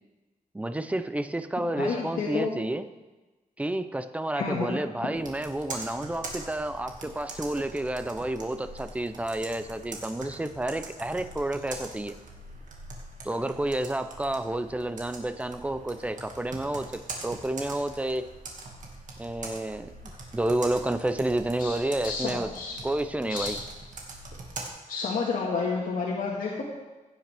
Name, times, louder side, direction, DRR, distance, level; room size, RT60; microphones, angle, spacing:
voice 1, 0.5-2.8 3.6-12.1 13.2-18.3 19.2-19.9 20.3-22.5 22.8-23.6, right 1 dB, 10° right, 11 dB, 0.5 m, -30 dB
voice 2, 1.6-2.5 4.4-5.1 21.6-21.7 22.0-22.8 23.3-23.5 24.9-26.6, left 4 dB, 80° left, -4 dB, 1.7 m, -30 dB
Computer keyboard, 5.1-24.7, right 2 dB, 65° right, 1.9 m, -43 dB
16.0 x 9.2 x 3.4 m, 1.2 s
wide cardioid pair, 160°, 14 cm